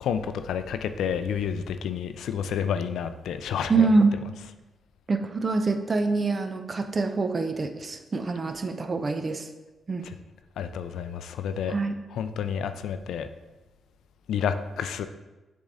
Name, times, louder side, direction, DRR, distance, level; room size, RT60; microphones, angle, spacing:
voice 1, 0.0-3.9 4.3-4.5 10.0-10.1 10.6-11.8 12.1-13.3 14.3-15.1, left 7 dB, 85° left, 10 dB, 0.4 m, -30 dB
voice 2, 3.7-4.2 5.1-9.5 9.9-10.0 11.7-12.0, right 3 dB, 40° right, 7 dB, 0.6 m, -25 dB
7.1 x 3.7 x 3.9 m, 1.1 s
cardioid pair, 70°, 0 cm